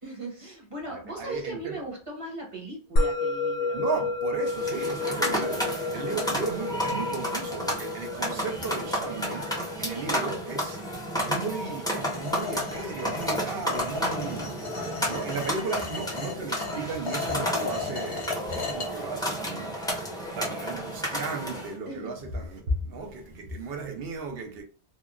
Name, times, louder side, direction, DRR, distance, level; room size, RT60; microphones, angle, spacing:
voice 1, 0.0-4.0 5.0-5.4 5.9-6.2 14.8-15.4 21.8-22.2, right 2 dB, 30° right, 0.9 m, -39 dB
voice 2, 0.9-1.8 3.7-5.7 5.9-10.8 11.2-14.6 15.1-24.6, right 3 dB, 65° right, 0.9 m, -35 dB
Musical instrument, 3.0-13.6, left 2 dB, 90° left, 0.9 m, -32 dB
sound 1, 4.4-21.7, equal, 5° left, 0.7 m, -32 dB
sound 2, 12.0-18.9, left 5 dB, 60° left, 1.0 m, -35 dB
2.9 x 2.2 x 2.3 m
omnidirectional pair, 1.1 m